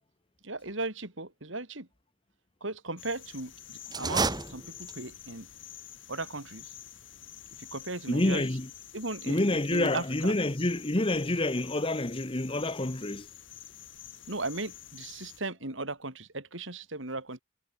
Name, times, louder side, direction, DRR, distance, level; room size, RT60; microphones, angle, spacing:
voice 1, 0.4-1.9 2.6-5.5 6.1-6.7 7.5-8.4 8.9-10.3 14.3-17.4, right 2 dB, 70° right, 4.6 m, -37 dB
sound 1, 3.0-15.4, left 11 dB, 70° left, 5.7 m, -48 dB
sound 2, 3.9-5.2, right 3 dB, 20° right, 2.6 m, -31 dB
voice 2, 8.1-8.7 9.3-13.3, left 1 dB, 25° left, 1.3 m, -28 dB
head